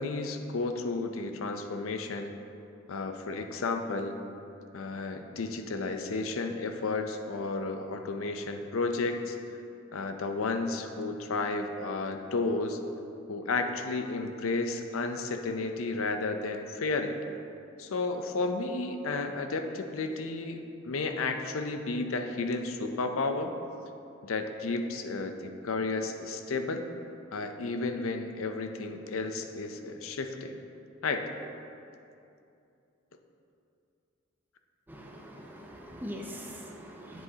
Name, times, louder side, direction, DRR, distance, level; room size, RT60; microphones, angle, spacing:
voice 1, 0.0-2.3 2.9-4.2 4.7-9.4 9.9-12.8 13.3-17.2 17.8-23.5 24.2-25.3 25.6-26.8 27.3-30.6 31.0-31.3, left 3 dB, 80° left, 6 dB, 0.6 m, -32 dB
voice 2, 34.9-37.2, equal, 10° right, -1 dB, 0.7 m, -42 dB
8.2 x 7.8 x 2.8 m, 2.6 s
head